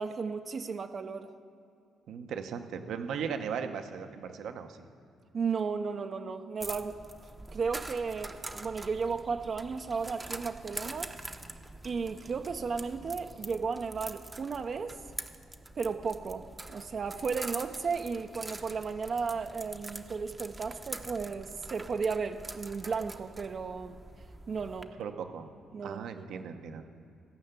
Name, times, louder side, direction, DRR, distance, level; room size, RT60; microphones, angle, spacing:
voice 1, 0.0-1.3 5.3-7.0 7.5-11.2 11.8-15.0 15.8-24.0 24.5-24.9 25.7-26.4, right 5 dB, 45° right, 6 dB, 0.6 m, -34 dB
voice 2, 2.1-4.9 25.0-25.5 25.8-26.8, right 6 dB, 75° right, 7 dB, 0.9 m, -37 dB
sound 1, 6.6-24.8, right 2 dB, 15° right, 0.8 m, -44 dB
16.5 x 5.7 x 8.1 m, 2.6 s
cardioid pair, 90°, 0 cm